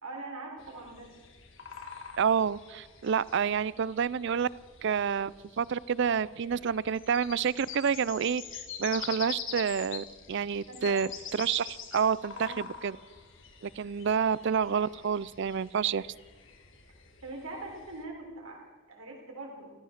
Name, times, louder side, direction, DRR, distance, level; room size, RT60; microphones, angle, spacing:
voice 1, 0.0-1.1 10.7-11.0 12.3-12.6 17.2-19.7, right 2 dB, 85° right, 0 dB, 4.0 m, -42 dB
sound 1, 0.6-18.0, left 7 dB, 60° left, 1.7 m, -45 dB
voice 2, 2.2-4.5 4.8-8.4 8.8-13.0 13.6-16.1, right 7 dB, 55° right, 21 dB, 0.4 m, -29 dB
15.0 x 14.0 x 6.5 m, 1.3 s
head